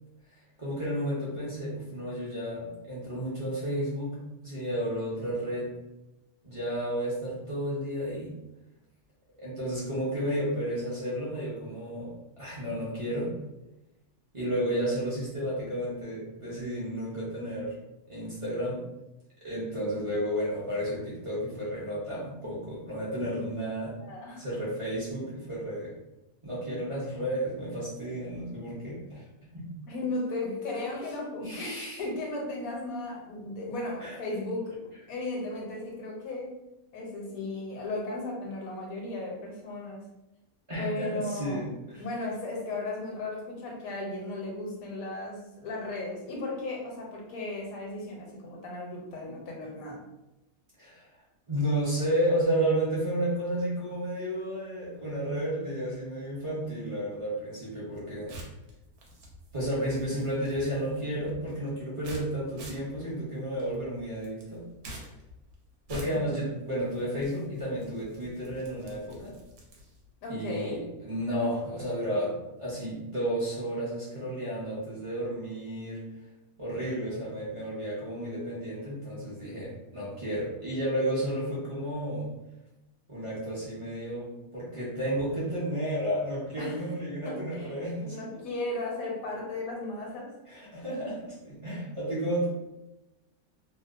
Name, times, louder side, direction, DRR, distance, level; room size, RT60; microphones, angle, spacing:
voice 1, 0.6-5.7 6.4-8.4 9.4-13.4 14.3-17.7 18.1-18.8 19.4-24.0 24.4-25.9 26.4-29.7 31.4-32.0 34.0-34.1 40.7-41.7 50.8-51.1 51.5-58.4 59.5-64.7 65.9-69.4 70.3-76.1 76.6-82.3 83.1-88.2 90.5-92.5, right 1 dB, 45° right, -7 dB, 0.4 m, -32 dB
voice 2, 24.0-24.5 29.9-34.8 35.1-36.6 36.9-40.0 40.8-41.7 42.0-50.0 70.2-70.8 86.6-86.9 87.2-90.4, left 2 dB, 75° left, -1 dB, 1.1 m, -35 dB
sound 1, 57.8-70.1, right 1 dB, 90° right, 1.1 m, -48 dB
2.7 x 2.0 x 2.4 m, 0.95 s
omnidirectional pair, 1.5 m